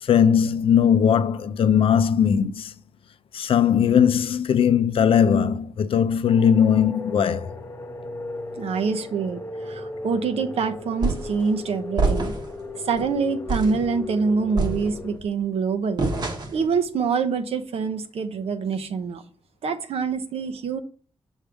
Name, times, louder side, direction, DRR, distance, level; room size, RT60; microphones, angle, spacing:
voice 1, 0.0-2.7 3.3-7.5, left 8 dB, 65° left, 0.5 m, -19 dB
sound 1, 6.2-15.2, left 3 dB, 30° left, 1.0 m, -36 dB
voice 2, 8.6-9.4 9.7-12.3 12.8-16.1 16.5-19.2 19.6-20.8, right 5 dB, 80° right, 0.8 m, -25 dB
sound 2, 11.0-11.4 12.0-12.6 13.0-13.1 13.5-13.8 14.6-15.2 16.0-16.7, right 3 dB, 45° right, 1.1 m, -26 dB
6.3 x 3.5 x 5.0 m
wide cardioid pair, 155°, 10 cm